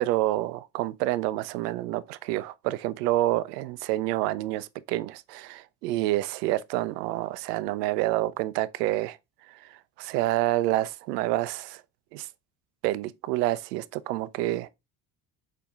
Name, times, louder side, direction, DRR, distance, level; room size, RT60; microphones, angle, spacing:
voice 1, 0.0-9.2 10.0-11.8 12.1-12.3 12.8-14.7, right 16 dB, 75° right, 0.6 m, -28 dB
5.3 x 4.2 x 2.3 m
hypercardioid pair, 65°, 48 cm